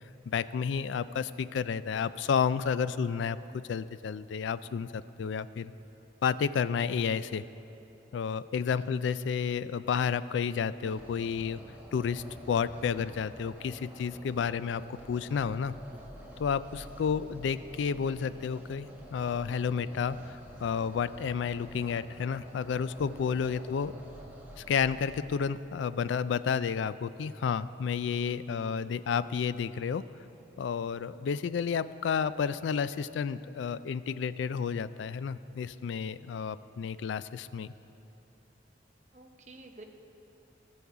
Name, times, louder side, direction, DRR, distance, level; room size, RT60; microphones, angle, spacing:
voice 1, 0.3-5.7 6.2-7.4 8.1-11.6 11.9-15.7 16.4-23.9 24.6-30.0 30.6-37.7, left 6 dB, 75° left, 15 dB, 0.3 m, -31 dB
sound 1, 10.8-25.2, equal, 10° right, 1.1 m, -49 dB
voice 2, 39.1-39.8, right 2 dB, 40° right, 3 dB, 0.8 m, -50 dB
16.5 x 7.1 x 4.7 m, 2.9 s
head